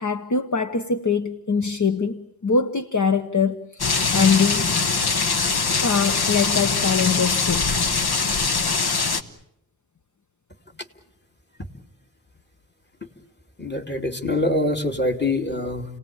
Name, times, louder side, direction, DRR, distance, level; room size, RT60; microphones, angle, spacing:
voice 1, 0.0-4.7 5.8-7.7 9.2-9.3, left 5 dB, 50° left, 1.0 m, -23 dB
sound 1, 3.8-9.2, left 4 dB, 75° left, 1.3 m, -22 dB
voice 2, 13.6-15.8, left 2 dB, 25° left, 2.6 m, -24 dB
30.0 x 18.5 x 8.7 m
cardioid pair, 45°, 38 cm